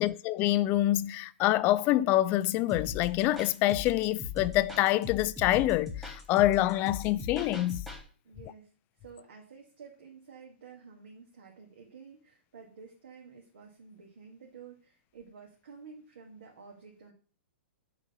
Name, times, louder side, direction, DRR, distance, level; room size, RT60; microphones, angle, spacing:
voice 1, 0.0-7.8, left 15 dB, 30° left, 0.3 m, -26 dB
sound 1, 2.7-8.0, left 5 dB, 5° right, 1.8 m, -40 dB
voice 2, 8.2-8.7 9.0-17.1, right 5 dB, 65° right, 1.8 m, -51 dB
7.1 x 3.9 x 5.4 m
figure-of-eight pair, 115°, 6 cm